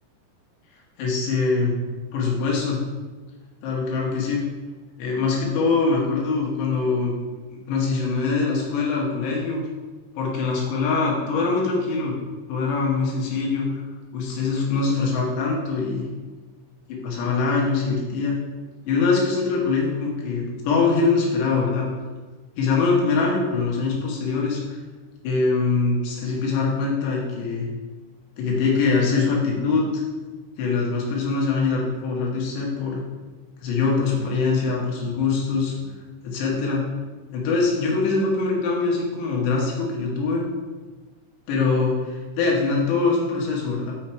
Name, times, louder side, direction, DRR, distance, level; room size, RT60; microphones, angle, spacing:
voice 1, 1.0-1.7 2.1-2.8 3.6-4.5 5.0-7.1 7.5-9.6 10.1-12.1 12.5-13.8 14.1-16.1 16.9-18.4 18.9-22.0 22.6-24.8 25.2-27.7 28.4-30.0 30.6-33.0 33.6-35.9 36.2-36.9 37.3-40.4 41.5-43.9, left 4 dB, 70° left, -2 dB, 3.2 m, -23 dB
7.3 x 5.6 x 4.4 m, 1.3 s
omnidirectional pair, 5.9 m